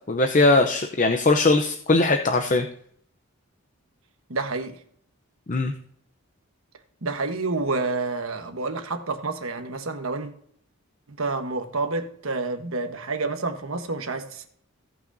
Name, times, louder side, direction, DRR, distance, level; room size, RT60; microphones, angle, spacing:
voice 1, 0.1-2.6 5.5-5.7, left 2 dB, 35° left, 0.7 m, -20 dB
voice 2, 4.3-4.8 7.0-10.3 11.1-14.5, right 3 dB, 75° right, 1.2 m, -29 dB
17.5 x 5.9 x 2.7 m
head